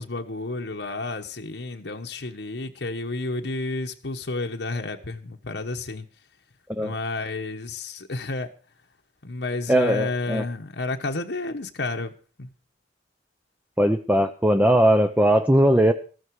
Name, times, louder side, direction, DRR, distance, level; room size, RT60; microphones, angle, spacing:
voice 1, 0.0-6.1 6.8-8.5 9.2-12.1 12.4-12.5, left 3 dB, 75° left, 1.2 m, -31 dB
voice 2, 9.7-10.4 13.8-15.9, right 1 dB, 10° right, 0.7 m, -19 dB
14.5 x 13.0 x 4.8 m
head